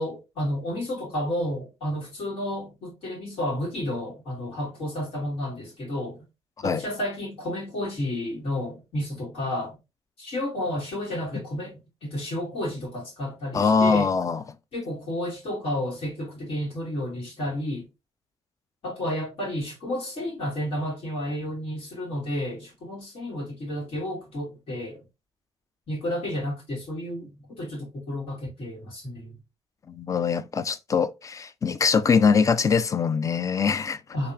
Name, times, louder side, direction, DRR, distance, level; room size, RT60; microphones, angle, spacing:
voice 1, 0.0-6.2 6.6-9.8 10.2-14.1 14.7-17.9 18.8-25.0 25.9-29.3 34.1-34.3, left 1 dB, 65° left, 2.2 m, -31 dB
voice 2, 13.5-14.4 29.9-34.0, left 5 dB, 30° left, 0.4 m, -22 dB
3.7 x 2.9 x 2.7 m
cardioid pair, 80°, 10 cm